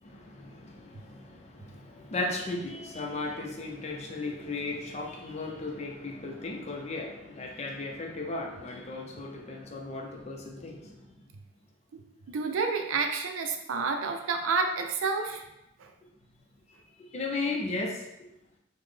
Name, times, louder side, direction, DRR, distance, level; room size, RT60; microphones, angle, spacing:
voice 1, 0.0-11.1 17.1-18.0, left 2 dB, 35° left, 0 dB, 0.5 m, -36 dB
voice 2, 12.3-15.4 15.8-15.9, right 4 dB, 85° right, 4 dB, 0.4 m, -29 dB
3.8 x 2.0 x 3.2 m, 0.89 s
head